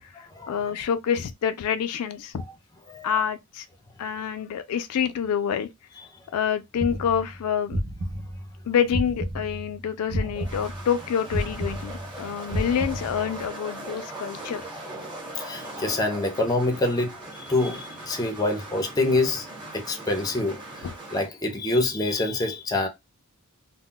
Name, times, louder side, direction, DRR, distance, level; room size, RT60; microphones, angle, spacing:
voice 1, 0.0-2.5 3.0-3.7 4.0-5.7 6.3-7.8 8.7-14.6 20.8-21.0, left 8 dB, 75° left, 0.3 m, -27 dB
sound 1, 6.8-9.7 10.1-13.4, equal, 55° right, 0.7 m, -31 dB
sound 2, 10.2-21.3, right 1 dB, 20° right, 1.0 m, -40 dB
voice 2, 15.4-19.5 19.7-20.6 21.1-22.9, left 2 dB, 15° left, 0.5 m, -26 dB
2.2 x 2.0 x 3.6 m
head